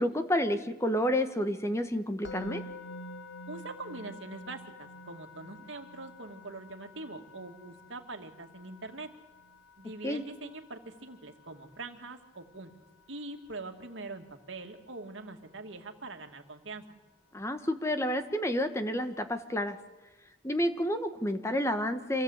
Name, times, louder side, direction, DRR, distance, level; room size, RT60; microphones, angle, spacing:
voice 1, 0.0-2.6 10.0-10.2 17.3-19.8 20.4-22.2, equal, 15° left, 8 dB, 1.3 m, -30 dB
Musical instrument, 2.2-13.4, left 2 dB, 80° left, 2.2 m, -48 dB
voice 2, 3.5-9.1 9.8-12.7 13.1-17.0, right 3 dB, 80° right, 5 dB, 2.3 m, -43 dB
27.0 x 16.5 x 8.2 m, 1.1 s
head